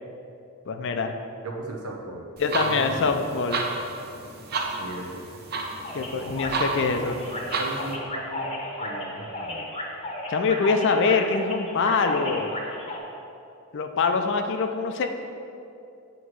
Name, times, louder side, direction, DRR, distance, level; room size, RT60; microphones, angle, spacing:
voice 1, 0.7-1.2 2.4-3.7 5.9-7.2 10.3-12.5 13.7-15.1, left 4 dB, 55° left, 6 dB, 0.4 m, -24 dB
voice 2, 1.4-2.2 2.6-3.1 4.8-5.2 6.8-6.9 7.6-8.5 8.8-9.7, right 2 dB, 85° right, 0 dB, 0.8 m, -37 dB
sound 1, 2.4-7.9, right 3 dB, 45° right, 0.7 m, -32 dB
sound 2, 5.8-13.0, left 1 dB, 25° left, 0.8 m, -34 dB
8.0 x 3.0 x 6.1 m, 2.6 s
head